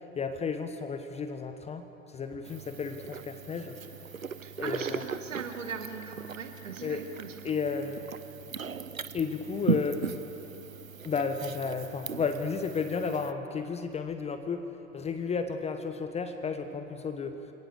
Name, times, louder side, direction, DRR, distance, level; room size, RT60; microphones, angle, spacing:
voice 1, 0.1-3.8 4.0-4.1 4.6-5.0 6.8-7.0 7.4-8.0 9.1-10.0 11.0-14.7 14.9-17.5, left 5 dB, 15° left, 8 dB, 1.1 m, -33 dB
sound 1, 2.4-13.3, right 6 dB, 85° right, 0.8 m, -38 dB
voice 2, 4.4-7.5, right 6 dB, 65° right, 6 dB, 1.8 m, -40 dB
28.5 x 18.0 x 7.0 m, 3.0 s
figure-of-eight pair, 90°, 40 cm